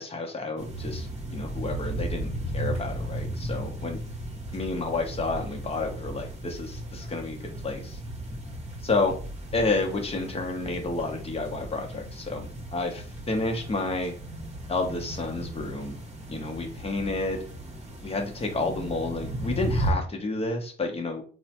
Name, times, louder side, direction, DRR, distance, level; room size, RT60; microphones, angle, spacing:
voice 1, 0.0-4.0 4.5-8.0 8.8-9.1 9.5-12.5 12.7-14.1 14.7-16.0 16.3-17.4 18.0-21.2, left 3 dB, 30° left, 3 dB, 0.8 m, -30 dB
sound 1, 0.6-19.9, right 1 dB, 35° right, 0.8 m, -35 dB
3.1 x 2.1 x 2.9 m, 0.40 s
cardioid pair, 90°, 20 cm